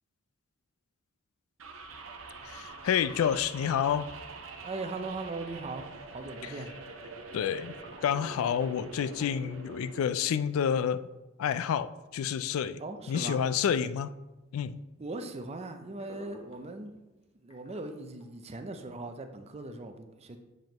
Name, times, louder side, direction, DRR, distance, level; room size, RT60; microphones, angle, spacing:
sound 1, 1.6-10.2, right 3 dB, 80° right, 0.7 m, -45 dB
voice 1, 2.4-4.1 6.4-6.5 7.3-7.7 8.0-11.1 11.4-12.8 13.1-14.1 14.5-14.8, left 8 dB, 85° left, 15 dB, 0.3 m, -29 dB
voice 2, 4.6-6.7 12.8-13.4 15.0-17.0 17.4-20.4, right 2 dB, 30° right, 7 dB, 0.5 m, -39 dB
sound 2, 6.0-18.5, left 1 dB, 30° left, 1.1 m, -59 dB
7.5 x 5.2 x 2.9 m, 1.0 s
head